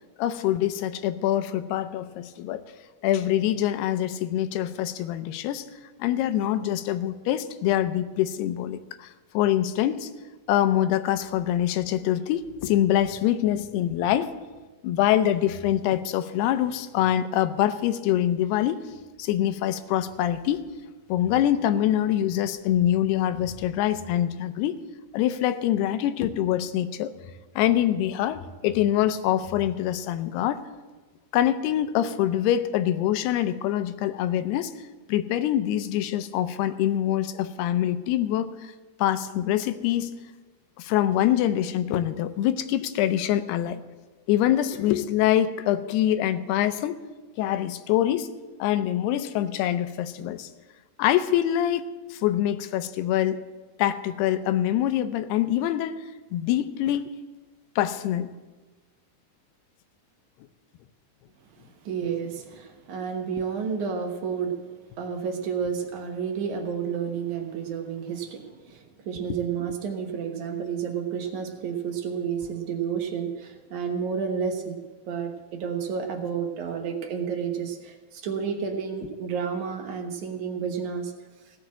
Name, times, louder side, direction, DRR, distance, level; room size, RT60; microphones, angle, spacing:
voice 1, 0.2-2.6 3.0-5.7 6.0-10.1 10.5-14.3 14.8-18.8 19.2-20.7 21.1-24.8 25.1-27.1 27.6-30.6 31.3-34.7 35.1-38.7 39.0-40.2 40.8-43.8 44.3-47.0 47.4-48.3 48.6-50.5 51.0-51.9 52.1-53.4 53.8-56.1 56.3-57.1 57.8-58.3, left 12 dB, 90° left, 12 dB, 2.7 m, -24 dB
voice 2, 61.8-64.6 65.0-74.8 75.1-81.1, right 6 dB, 65° right, 3 dB, 2.2 m, -30 dB
16.5 x 6.0 x 7.6 m, 1.2 s
omnidirectional pair, 4.6 m